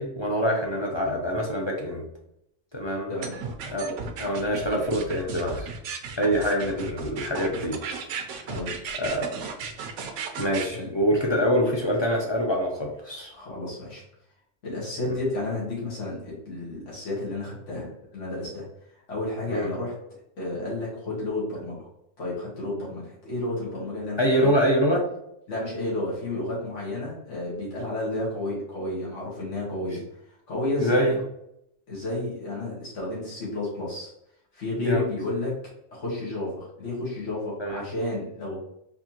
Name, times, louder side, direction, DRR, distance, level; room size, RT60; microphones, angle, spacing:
voice 1, 0.0-2.0 2.7-3.1 3.7-5.7 6.2-7.8 8.3-8.4 9.0-9.5 10.4-13.3 19.5-19.7 24.2-25.1 29.9-30.0 30.8-31.2 34.8-35.0 37.6-37.8, equal, 40° left, -1 dB, 0.4 m, -25 dB
voice 2, 3.1-3.5 8.4-8.8 10.7-10.9 13.3-14.0 14.6-18.6 18.9-19.9 20.4-21.9 22.2-24.5 25.5-30.0 30.5-31.2 31.9-34.1 34.5-35.5 35.9-38.6, left 2 dB, 80° left, -6 dB, 1.7 m, -31 dB
sound 1, 3.2-10.7, right 5 dB, 85° right, 1.0 m, -35 dB
4.3 x 2.8 x 2.8 m, 0.78 s
omnidirectional pair, 1.2 m